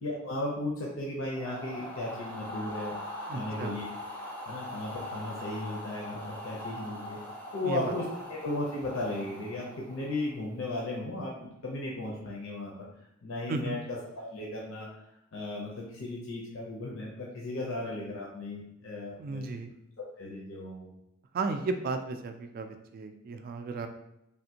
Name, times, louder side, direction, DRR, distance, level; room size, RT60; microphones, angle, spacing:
voice 1, 0.0-2.9 3.3-3.9 4.5-7.2 7.5-8.0 8.3-12.7 13.2-13.8 14.1-14.9 15.3-19.4 20.2-20.9, left 2 dB, 70° left, -3 dB, 0.6 m, -35 dB
sound 1, 1.3-10.4, left 1 dB, 10° left, 0.5 m, -41 dB
voice 2, 3.3-3.8 7.6-7.9 13.5-13.8 19.2-19.7 21.3-23.9, right 3 dB, 45° right, 7 dB, 0.3 m, -34 dB
3.4 x 2.5 x 2.8 m, 0.83 s
head